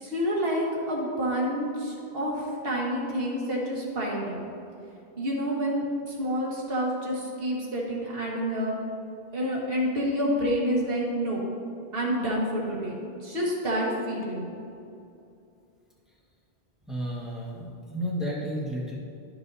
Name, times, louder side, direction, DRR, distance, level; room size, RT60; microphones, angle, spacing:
voice 1, 0.0-4.4 5.2-8.7 9.3-11.4 11.9-13.0 13.2-14.5, equal, 60° right, -3 dB, 1.7 m, -28 dB
voice 2, 16.9-18.9, equal, ahead, -5 dB, 1.4 m, -32 dB
12.0 x 6.2 x 2.7 m, 2.6 s
omnidirectional pair, 1.1 m